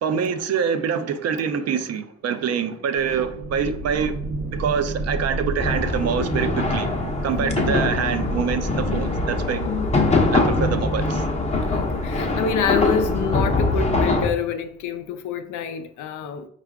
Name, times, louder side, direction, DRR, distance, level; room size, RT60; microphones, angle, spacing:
voice 1, 0.0-4.1 4.5-6.9 7.2-9.6 10.3-11.2, right 7 dB, 55° right, 0.5 m, -25 dB
sound 1, 2.9-14.4, right 2 dB, 90° right, 0.8 m, -34 dB
sound 2, 5.6-14.3, left 3 dB, 20° left, 0.7 m, -23 dB
voice 2, 7.4-7.8 9.6-10.0 11.7-16.5, left 6 dB, 80° left, 0.6 m, -27 dB
4.5 x 2.5 x 3.4 m
cardioid pair, 90°, 30 cm